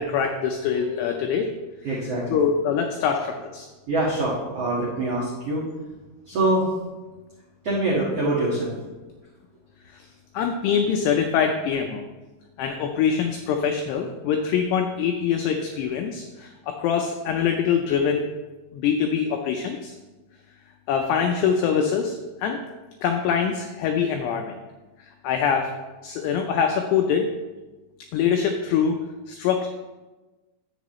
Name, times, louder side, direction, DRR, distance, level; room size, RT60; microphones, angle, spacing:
voice 1, 0.0-1.6 2.3-3.7 9.9-10.1 10.3-12.1 12.6-18.3 18.7-19.9 20.9-22.6 23.0-24.6 25.0-25.7 26.0-27.3 28.1-29.0 29.3-29.7, left 7 dB, 85° left, 3 dB, 2.4 m, -24 dB
voice 2, 1.8-2.4 3.9-5.6 6.3-6.6 7.6-8.8, right 2 dB, 75° right, -7 dB, 1.4 m, -24 dB
11.0 x 8.3 x 3.1 m, 1.2 s
omnidirectional pair, 5.5 m